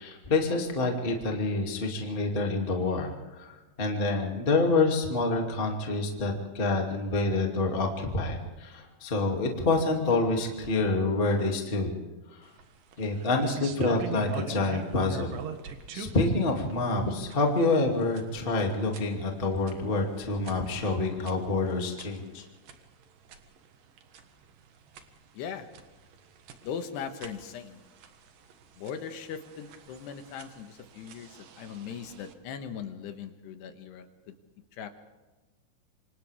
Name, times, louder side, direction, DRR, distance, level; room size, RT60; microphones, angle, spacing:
voice 1, 0.0-11.9 12.3-12.4 13.0-15.4 15.9-22.4, left 3 dB, 40° left, 1 dB, 0.7 m, -27 dB
sound 1, 12.4-32.3, right 7 dB, 65° right, 2.3 m, -46 dB
voice 2, 25.3-25.7 26.6-27.8 28.8-34.3 34.8-34.9, left 7 dB, 70° left, 7 dB, 2.9 m, -39 dB
27.5 x 26.5 x 3.6 m, 1.2 s
omnidirectional pair, 6.0 m